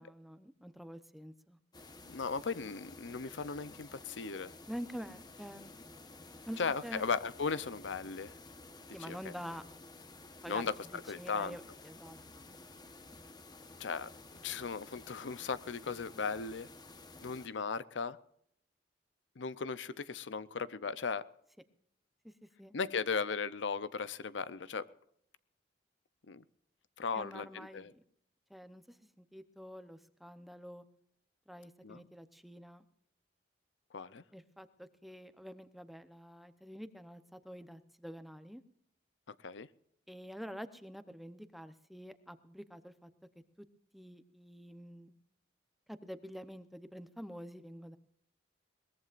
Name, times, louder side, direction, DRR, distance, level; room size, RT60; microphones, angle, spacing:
voice 1, 0.0-1.6 4.7-5.7 6.5-7.0 8.9-9.6 10.4-10.7 11.2-12.5 22.2-22.7 27.1-28.0 28.5-30.8 31.5-32.8 34.3-38.6 40.1-43.1 43.6-43.7 43.9-45.1 45.9-48.0, equal, ahead, 10 dB, 0.8 m, -47 dB
sound 1, 1.7-17.5, left 2 dB, 25° left, 1.1 m, -53 dB
voice 2, 2.1-4.5 6.6-8.3 9.1-9.2 10.5-10.7 11.1-11.6 13.8-14.1 14.4-16.7 17.2-18.2 19.4-21.2 22.7-24.9 26.3-26.4 27.0-27.9 31.8-32.1 33.9-34.2 39.3-39.7, left 5 dB, 85° left, 15 dB, 0.7 m, -37 dB
22.0 x 19.5 x 2.5 m, 0.69 s
head